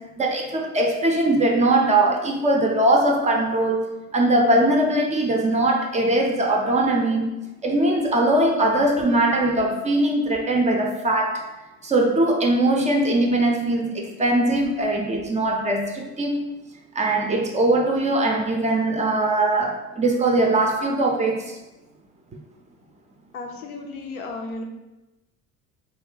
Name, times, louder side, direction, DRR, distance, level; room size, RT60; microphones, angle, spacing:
voice 1, 0.2-7.3 7.6-11.4 11.8-16.5 17.0-21.5, right 2 dB, 20° right, 1 dB, 0.4 m, -21 dB
voice 2, 23.3-24.6, left 3 dB, 85° left, 2 dB, 0.5 m, -34 dB
2.6 x 2.1 x 3.8 m, 1.0 s
figure-of-eight pair, 60°, 42 cm